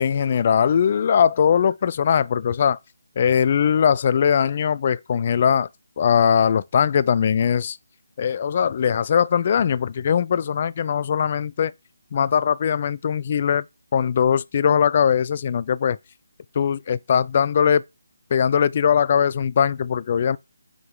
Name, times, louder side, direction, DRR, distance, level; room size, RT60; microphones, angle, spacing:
voice 1, 0.0-2.8 3.2-5.7 6.0-7.8 8.2-11.7 12.1-13.6 13.9-16.0 16.6-17.8 18.3-20.4, left 7 dB, 35° left, 0.3 m, -20 dB
5.7 x 4.8 x 3.7 m
figure-of-eight pair, 150°, 0 cm